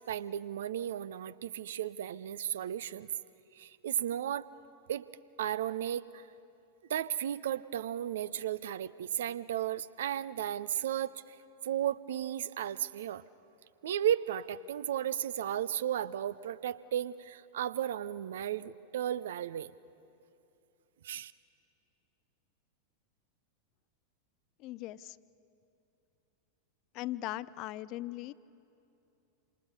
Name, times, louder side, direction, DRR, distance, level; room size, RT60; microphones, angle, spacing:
voice 1, 0.0-3.1 3.5-4.5 4.9-5.1 5.4-6.3 6.9-11.4 11.6-13.2 13.8-19.7 21.0-21.3, right 10 dB, 60° right, 18 dB, 0.5 m, -34 dB
voice 2, 24.6-25.2 26.9-28.3, left 16 dB, 40° left, 17 dB, 0.5 m, -39 dB
27.0 x 27.0 x 5.4 m, 2.8 s
figure-of-eight pair, 90°, 0 cm